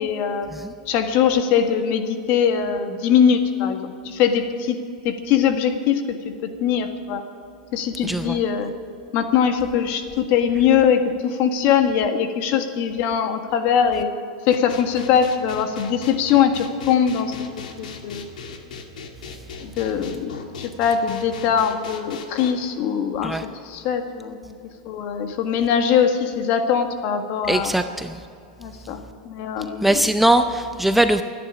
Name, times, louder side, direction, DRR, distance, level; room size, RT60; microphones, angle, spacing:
voice 1, 0.0-0.5 0.9-4.8 5.0-7.2 7.7-8.7 9.1-14.1 14.4-17.5 17.8-18.3 19.6-24.5 24.8-27.7 28.6-30.0, left 8 dB, 50° left, 7 dB, 1.7 m, -21 dB
voice 2, 8.0-8.4 23.2-23.4 27.5-28.2 29.8-31.2, right 1 dB, 5° right, 8 dB, 0.5 m, -20 dB
sound 1, 14.5-22.5, left 6 dB, 85° left, 1.9 m, -38 dB
26.0 x 10.0 x 5.0 m, 2.6 s
supercardioid pair, 130°, 4 cm